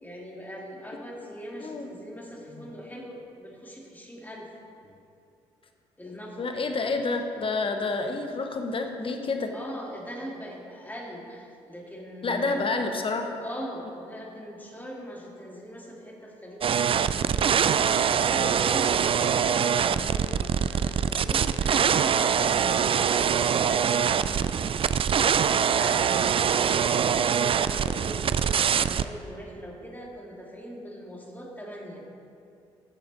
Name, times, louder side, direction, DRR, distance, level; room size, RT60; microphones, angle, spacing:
voice 1, 0.0-4.5 6.0-6.5 9.5-12.6 13.4-19.0 19.5-32.0, equal, 10° left, -2 dB, 2.2 m, -41 dB
voice 2, 1.6-1.9 2.5-2.6 6.4-9.5 12.2-13.3, left 3 dB, 40° left, 5 dB, 1.1 m, -29 dB
sound 1, 16.6-29.0, right 7 dB, 40° right, 0.4 m, -24 dB
13.0 x 6.8 x 4.0 m, 2.6 s
hypercardioid pair, 50°, 14 cm